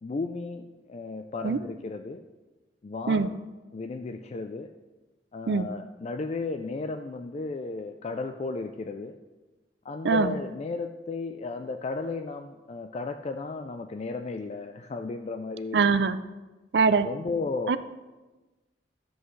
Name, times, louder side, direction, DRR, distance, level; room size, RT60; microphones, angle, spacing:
voice 1, 0.0-2.2 2.8-3.4 3.7-4.7 5.3-9.2 9.8-15.9 17.0-17.8, left 3 dB, 40° left, 7 dB, 0.4 m, -34 dB
voice 2, 10.0-10.3 15.7-16.2 16.7-17.1 17.7-17.8, right 5 dB, 70° right, 13 dB, 0.4 m, -22 dB
12.5 x 7.8 x 3.2 m, 1.2 s
head